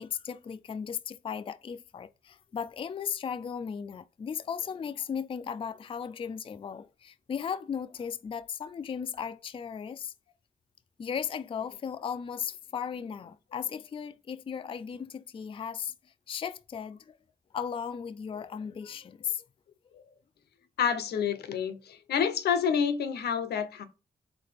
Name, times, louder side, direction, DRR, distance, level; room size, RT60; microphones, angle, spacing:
voice 1, 0.0-10.1 11.0-17.2 17.5-19.4 20.0-20.1, left 7 dB, 35° left, 0.3 m, -36 dB
voice 2, 20.8-23.9, left 7 dB, 80° left, 0.6 m, -28 dB
4.0 x 3.3 x 3.3 m
supercardioid pair, 50°, 17 cm